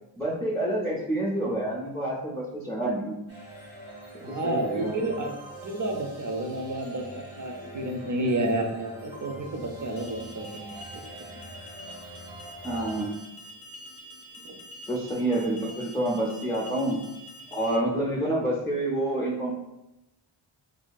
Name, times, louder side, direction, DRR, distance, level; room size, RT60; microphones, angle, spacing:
voice 1, 0.2-3.2 4.1-4.9 12.6-13.1 14.9-17.0 17.5-19.5, right 1 dB, 5° left, -5 dB, 0.5 m, -28 dB
sound 1, 3.3-13.1, right 1 dB, 85° right, 1.2 m, -44 dB
voice 2, 4.2-5.3 5.6-11.0 14.4-14.5, right 1 dB, 40° right, 2 dB, 0.6 m, -30 dB
Alarm, 10.0-17.8, equal, 70° left, 0.6 m, -46 dB
2.8 x 2.6 x 2.3 m, 0.92 s
cardioid pair, 55°, 48 cm